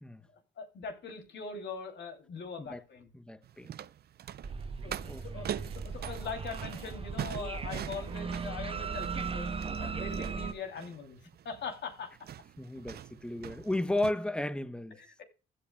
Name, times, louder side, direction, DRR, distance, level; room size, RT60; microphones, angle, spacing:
voice 1, 0.6-3.1 4.6-5.5 5.8-9.5 9.8-11.2 11.4-12.1 15.0-15.2, left 5 dB, 65° left, 2.8 m, -42 dB
voice 2, 3.1-3.8 5.1-5.5 12.6-15.0, left 1 dB, 5° left, 0.8 m, -34 dB
sound 1, 3.4-14.1, right 10 dB, 55° right, 0.5 m, -43 dB
sound 2, 4.4-10.5, right 5 dB, 30° right, 0.8 m, -37 dB
15.5 x 8.5 x 2.2 m
cardioid pair, 90°, 20 cm